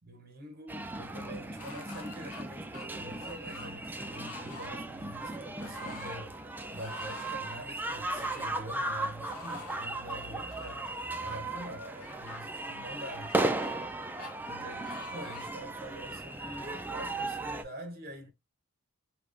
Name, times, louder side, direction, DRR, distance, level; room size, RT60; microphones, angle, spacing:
voice 1, 0.1-13.6 14.5-18.3, right 1 dB, 45° right, 0.7 m, -45 dB
sound 1, 0.7-17.6, right 2 dB, 10° right, 0.3 m, -36 dB
sound 2, 1.6-2.4 2.7-3.7 4.1-4.7 5.6-6.2 6.8-7.5 8.1-8.6 9.2-9.8 10.5-11.4 12.0-12.4 13.1-13.9 14.2-14.3 14.8-15.6 16.2-16.3, left 3 dB, 75° left, 0.9 m, -47 dB
3.5 x 2.8 x 2.5 m
head